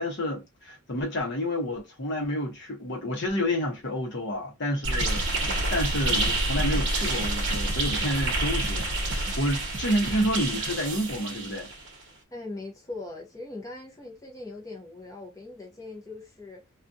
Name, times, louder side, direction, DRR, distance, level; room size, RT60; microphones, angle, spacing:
voice 1, 0.0-11.7, equal, 55° left, 0.9 m, -29 dB
sound 1, 4.8-11.9, right 2 dB, 60° right, 0.9 m, -28 dB
sound 2, 4.9-11.3, right 2 dB, 35° right, 0.5 m, -40 dB
voice 2, 12.3-16.6, left 2 dB, 15° left, 0.7 m, -40 dB
2.4 x 2.3 x 2.6 m
head